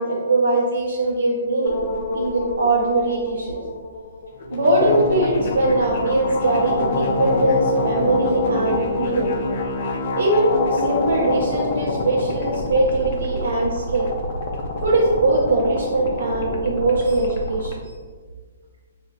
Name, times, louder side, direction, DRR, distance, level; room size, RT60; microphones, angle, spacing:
voice 1, 0.0-3.6 4.5-9.3 10.2-14.1 14.8-17.7, right 2 dB, 80° right, -3 dB, 0.6 m, -21 dB
sound 1, 1.6-17.7, left 2 dB, 50° left, 0.5 m, -26 dB
4.3 x 2.5 x 2.2 m, 1.5 s
hypercardioid pair, 160°, 0 cm